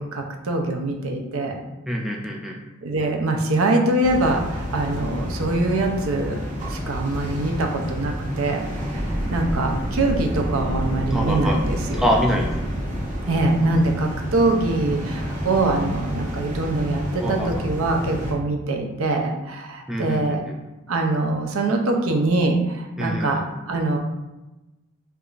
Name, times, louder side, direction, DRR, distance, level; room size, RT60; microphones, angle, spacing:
voice 1, 0.0-1.6 2.8-6.4 6.7-12.0 13.3-20.4 20.9-24.0, right 2 dB, 90° right, 2 dB, 0.6 m, -23 dB
voice 2, 1.9-2.6 11.1-11.6 12.0-12.5 17.2-17.5 19.9-20.4 23.0-23.4, equal, ahead, -1 dB, 0.3 m, -25 dB
sound 1, 4.0-18.3, equal, 35° right, 0.8 m, -30 dB
sound 2, 8.9-13.7, equal, 65° right, 1.4 m, -29 dB
4.6 x 2.5 x 2.4 m, 1.0 s
head